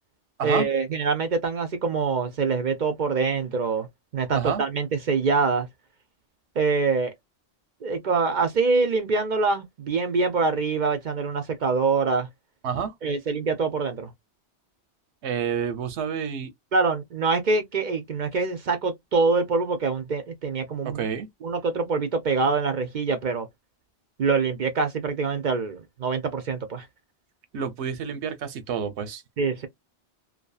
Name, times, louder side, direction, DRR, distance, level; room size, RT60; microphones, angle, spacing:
voice 1, 0.4-3.9 4.1-5.7 6.6-7.1 7.8-12.3 13.0-14.1 16.7-21.0 21.4-23.5 24.2-26.9 29.4-29.7, right 4 dB, 55° right, 0.6 m, -25 dB
voice 2, 12.6-12.9 15.2-16.5 20.8-21.3 27.5-29.2, right 7 dB, 85° right, 1.0 m, -29 dB
2.6 x 2.3 x 2.3 m
omnidirectional pair, 1.1 m